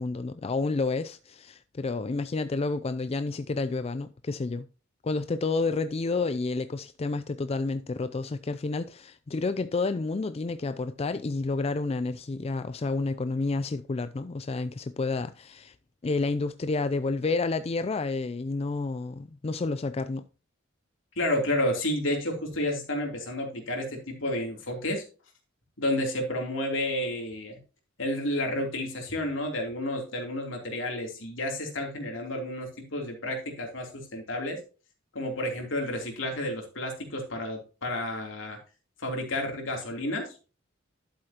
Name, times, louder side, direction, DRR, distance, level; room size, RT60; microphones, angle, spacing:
voice 1, 0.0-4.7 5.0-15.7 16.0-20.2, left 3 dB, 30° left, 0.4 m, -30 dB
voice 2, 21.1-25.0 25.8-27.6 28.0-34.6 35.1-38.6 39.0-40.3, left 1 dB, 70° left, 3.2 m, -31 dB
11.5 x 7.9 x 2.9 m
head